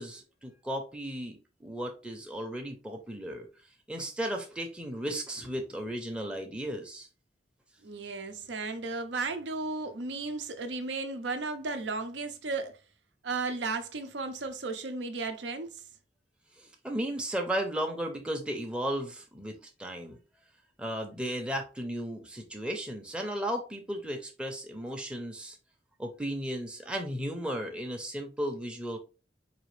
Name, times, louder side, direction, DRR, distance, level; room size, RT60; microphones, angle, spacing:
voice 1, 0.0-3.5 3.9-7.1 16.6-20.2 20.8-25.6 26.0-29.0, right 1 dB, 5° right, 0.6 m, -35 dB
voice 2, 7.8-12.7 13.2-15.7, right 3 dB, 85° right, 0.7 m, -34 dB
4.1 x 2.8 x 3.2 m
head